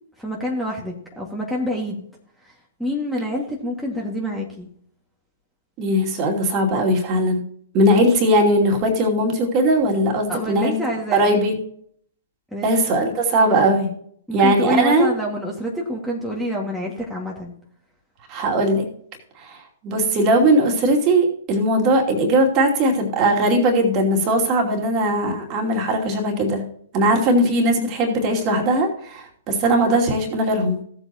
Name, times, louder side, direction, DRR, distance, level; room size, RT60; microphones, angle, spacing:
voice 1, 0.2-2.1 2.4-2.5 2.8-4.7 10.3-11.3 12.5-12.7 14.3-17.5, equal, ahead, -3 dB, 2.0 m, -27 dB
voice 2, 5.8-7.4 7.7-10.8 11.1-11.5 12.6-13.9 14.3-15.1 18.3-18.9 19.4-26.6 26.9-30.8, right 1 dB, 35° right, 1 dB, 2.6 m, -19 dB
16.5 x 8.0 x 2.9 m, 0.63 s
figure-of-eight pair, 115°, 0 cm